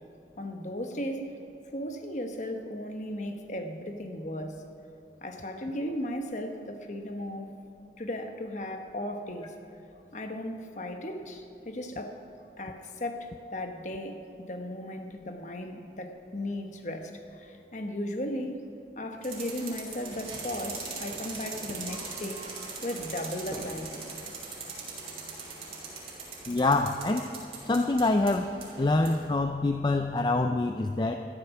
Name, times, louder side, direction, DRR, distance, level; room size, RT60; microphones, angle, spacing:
voice 1, 0.4-1.3 1.7-4.6 5.2-7.5 8.0-9.5 10.1-12.2 12.6-18.6 18.9-22.5 22.8-24.1, left 1 dB, 40° left, 5 dB, 1.1 m, -36 dB
sound 1, 19.2-29.2, right 4 dB, 35° right, 3.0 m, -41 dB
voice 2, 26.5-27.3 27.6-28.5 28.8-31.2, left 2 dB, 25° left, 6 dB, 0.4 m, -25 dB
13.0 x 12.5 x 5.9 m, 2.9 s
head